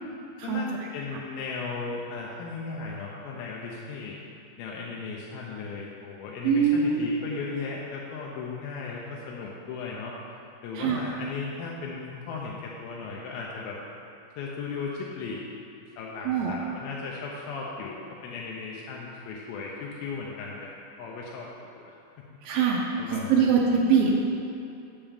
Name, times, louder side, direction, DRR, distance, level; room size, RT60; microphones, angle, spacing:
voice 1, 0.4-4.2 4.6-10.2 10.6-13.8 14.4-15.4 16.0-20.7 21.0-22.0 22.3-22.4 23.0-24.0, left 4 dB, 85° left, -3 dB, 2.5 m, -36 dB
voice 2, 6.4-7.1 10.8-11.0 16.3-16.5 22.4-24.2, right 6 dB, 80° right, -1 dB, 2.2 m, -23 dB
7.2 x 7.1 x 3.4 m, 2.8 s
omnidirectional pair, 4.3 m